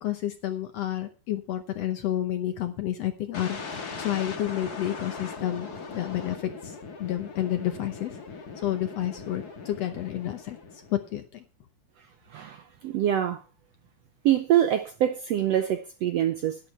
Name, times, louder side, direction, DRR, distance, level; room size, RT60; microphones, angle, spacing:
voice 1, 0.0-8.2 8.6-10.6 10.9-11.4, left 12 dB, 70° left, 1.7 m, -30 dB
sound 1, 3.3-11.2, left 4 dB, 35° left, 1.7 m, -39 dB
voice 2, 12.3-13.4 14.2-16.6, right 11 dB, 80° right, 1.5 m, -25 dB
11.5 x 11.0 x 4.3 m
omnidirectional pair, 3.8 m